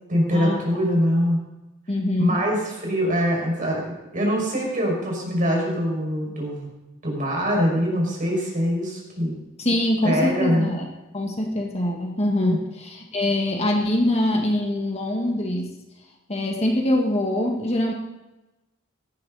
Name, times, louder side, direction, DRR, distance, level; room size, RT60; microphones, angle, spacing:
voice 1, 0.1-1.4 2.2-6.7 7.0-9.3 10.0-10.7 12.4-12.6, equal, 40° right, -1 dB, 6.0 m, -23 dB
voice 2, 1.9-2.4 9.6-10.9 11.1-15.7 16.3-17.9, left 1 dB, 30° left, 1 dB, 1.8 m, -23 dB
17.5 x 13.5 x 4.2 m, 1.0 s
head